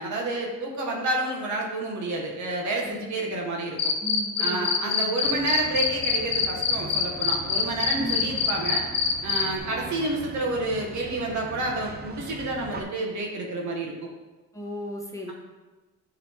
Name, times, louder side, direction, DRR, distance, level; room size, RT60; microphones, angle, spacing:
voice 1, 0.0-3.9 4.4-8.8 9.2-14.1, right 2 dB, 70° right, -1 dB, 1.6 m, -29 dB
voice 2, 2.8-3.4 4.0-5.1 7.9-8.4 14.5-15.3, right 1 dB, 10° left, -1 dB, 1.3 m, -36 dB
Cricket, 3.8-9.4, left 7 dB, 60° left, 0.9 m, -24 dB
sound 1, 5.2-12.8, right 4 dB, 35° right, 0.8 m, -41 dB
10.5 x 3.8 x 3.7 m, 1.2 s
cardioid pair, 90°, 30 cm